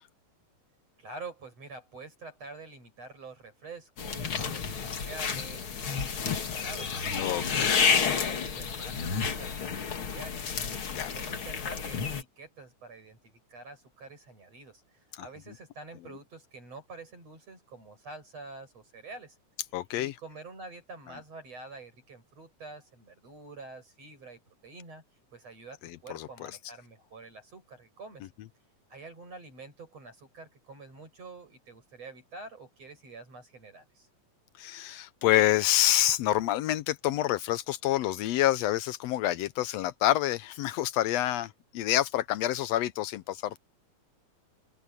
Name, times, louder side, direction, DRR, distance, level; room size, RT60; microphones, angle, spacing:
voice 1, 1.0-10.4 10.8-19.4 19.9-25.0 25.3-28.3 28.9-34.1, right 3 dB, 50° right, 8.4 m, -47 dB
sound 1, 4.0-12.2, left 6 dB, 45° left, 2.4 m, -30 dB
voice 2, 7.2-7.7 10.9-11.1 15.2-15.3 19.7-20.1 26.1-26.3 34.6-43.6, left 14 dB, 80° left, 1.5 m, -27 dB
open air
omnidirectional pair, 3.6 m